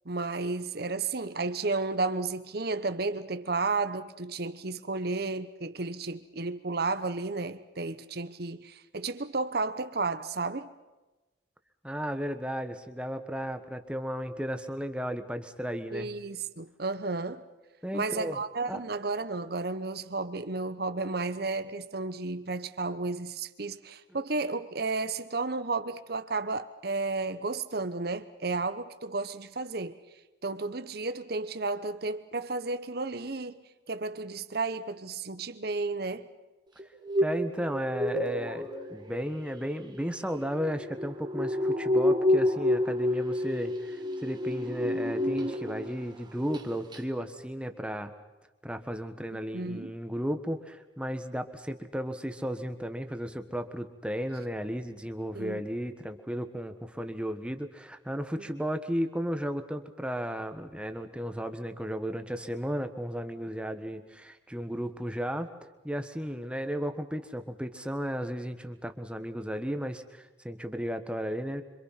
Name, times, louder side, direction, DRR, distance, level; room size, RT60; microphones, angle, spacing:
voice 1, 0.0-10.7 15.9-17.4 17.9-29.9 30.4-33.6 33.9-36.3 49.5-49.9 55.3-55.6, right 3 dB, 55° right, 1.0 m, -32 dB
voice 2, 11.8-16.1 17.8-18.4 18.7-18.8 24.1-24.2 37.2-48.1 48.6-65.5 65.8-71.6, equal, 5° right, 1.4 m, -34 dB
sound 1, 36.8-46.0 46.3-46.7 46.9-47.0, left 1 dB, 25° right, 2.0 m, -29 dB
26.5 x 25.5 x 5.9 m
head